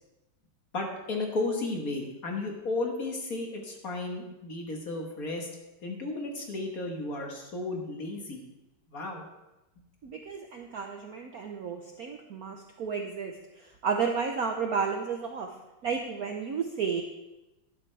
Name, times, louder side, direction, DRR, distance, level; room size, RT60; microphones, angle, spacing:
voice 1, 0.7-5.5 5.8-8.4 8.9-9.2, left 2 dB, 45° left, 1 dB, 1.6 m, -33 dB
voice 2, 10.0-15.5 15.8-17.0, right 6 dB, 65° right, 3 dB, 0.9 m, -32 dB
11.5 x 11.0 x 3.3 m, 0.98 s
omnidirectional pair, 2.4 m